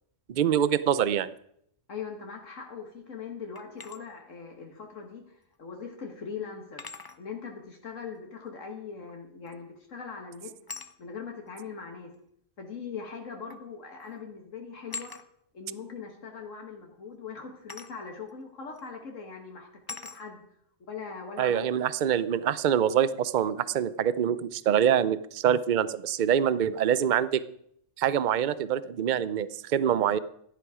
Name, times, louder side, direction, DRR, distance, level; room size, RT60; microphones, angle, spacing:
voice 1, 0.3-1.3 21.4-27.4 28.0-30.2, right 9 dB, 50° right, 16 dB, 0.6 m, -25 dB
voice 2, 1.9-6.9 7.2-10.5 11.0-12.1 12.6-15.1 15.5-20.4 20.9-21.6, left 5 dB, 75° left, 2 dB, 1.9 m, -41 dB
sound 1, 3.5-4.0 5.5-5.6 6.8-7.2 9.5-9.8 10.7-10.9 12.1-12.2 13.5-13.7 14.0-14.3 14.9-15.3 17.7-18.0 18.8-18.9 19.9-20.2, left 4 dB, 25° left, 0.6 m, -41 dB
16.0 x 11.0 x 4.9 m, 0.72 s
omnidirectional pair, 1.3 m